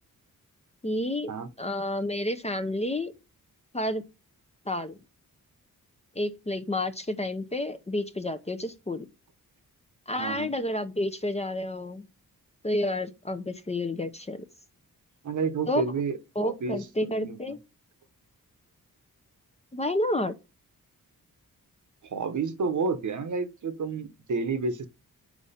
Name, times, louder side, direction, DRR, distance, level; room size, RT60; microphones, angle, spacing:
voice 1, 0.8-1.3 1.6-3.1 3.7-4.0 4.7-5.0 6.2-9.1 10.1-12.1 12.6-14.4 15.7-15.8 16.4-17.6 19.7-20.3, left 1 dB, 20° left, 0.7 m, -30 dB
voice 2, 10.2-10.5 15.2-17.6 22.0-24.9, right 4 dB, 55° right, 1.0 m, -30 dB
7.1 x 4.7 x 4.2 m
wide cardioid pair, 120°, 35 cm